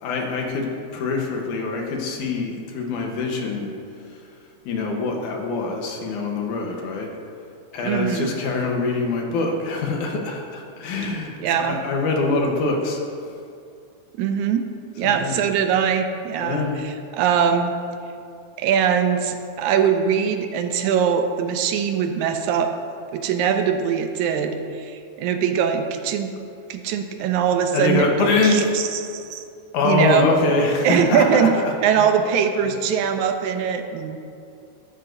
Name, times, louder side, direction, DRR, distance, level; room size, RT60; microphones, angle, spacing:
voice 1, 0.0-3.7 4.7-7.1 7.7-13.0 15.0-15.4 16.4-16.8 27.7-28.7 29.7-31.5 31.9-32.1, left 3 dB, 85° left, 1 dB, 2.6 m, -24 dB
voice 2, 7.8-8.3 11.4-11.8 14.2-14.7 15.0-17.7 18.6-22.7 23.1-26.3 26.7-29.4 29.8-30.3 30.8-31.5 31.8-34.2, right 7 dB, 80° right, 6 dB, 2.0 m, -22 dB
12.5 x 11.5 x 2.6 m, 2.4 s
omnidirectional pair, 3.4 m